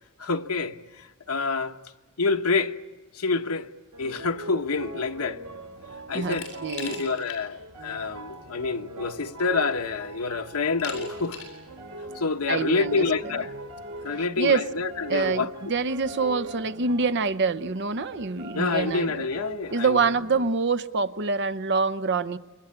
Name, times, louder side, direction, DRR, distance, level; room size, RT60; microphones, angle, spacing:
voice 1, 0.2-1.8 2.2-2.8 3.1-3.7 4.0-5.4 6.1-6.5 6.8-11.4 12.1-13.5 14.0-15.5 18.5-20.0, left 4 dB, 85° left, 1.2 m, -27 dB
sound 1, 3.9-20.5, right 1 dB, 85° right, 2.8 m, -42 dB
Glass, 6.3-7.4 7.8-7.9 9.0-9.1 9.6-10.0 10.8-11.6, left 6 dB, 60° left, 8.0 m, -40 dB
voice 2, 6.6-7.0 12.5-13.3 14.4-14.7 15.1-19.2 19.7-22.4, right 4 dB, 55° right, 0.8 m, -26 dB
28.5 x 22.5 x 8.8 m
head